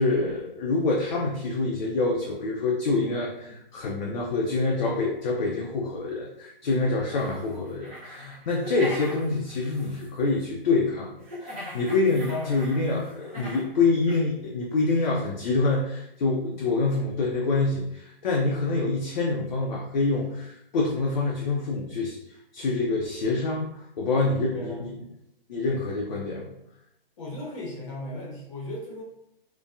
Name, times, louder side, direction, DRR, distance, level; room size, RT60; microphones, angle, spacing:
voice 1, 0.0-11.1 11.4-22.2 22.5-24.9 25.5-26.5, left 3 dB, 50° left, -2 dB, 0.4 m, -26 dB
sound 1, 7.2-10.4 11.2-13.7 14.1-14.2, left 1 dB, 15° right, 0.3 m, -41 dB
voice 2, 12.3-12.7 16.6-16.8 24.5-24.8 27.2-29.0, left 2 dB, 35° left, -2 dB, 0.8 m, -36 dB
2.5 x 2.2 x 2.2 m, 0.81 s
figure-of-eight pair, 125°, 29 cm